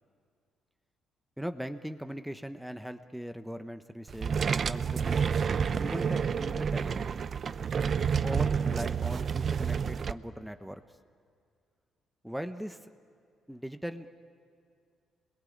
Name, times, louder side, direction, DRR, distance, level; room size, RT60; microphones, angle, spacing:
voice 1, 1.4-5.5 5.8-7.0 8.2-10.8 12.2-12.8 13.5-14.1, equal, 5° right, 8 dB, 1.0 m, -39 dB
sound 1, 4.1-10.1, right 6 dB, 50° right, 0.6 m, -29 dB
28.5 x 22.0 x 8.7 m, 2.3 s
cardioid pair, 90°, 0 cm